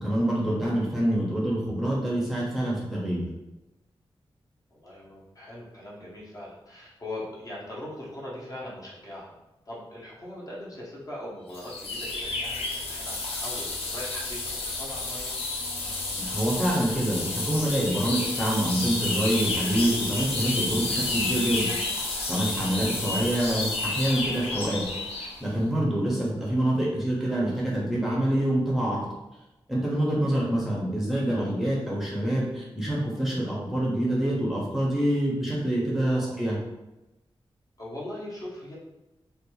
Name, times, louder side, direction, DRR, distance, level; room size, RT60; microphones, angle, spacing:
voice 1, 0.0-3.3 16.2-21.7 22.0-29.0 29.7-36.6, right 1 dB, 5° right, -6 dB, 0.6 m, -26 dB
voice 2, 4.7-9.4 9.7-15.4 36.1-36.4 37.8-38.8, left 1 dB, 35° left, -5 dB, 0.7 m, -40 dB
sound 1, 11.5-25.4, left 3 dB, 85° left, 0.5 m, -31 dB
2.5 x 2.2 x 3.0 m, 0.98 s
wide cardioid pair, 130°, 10 cm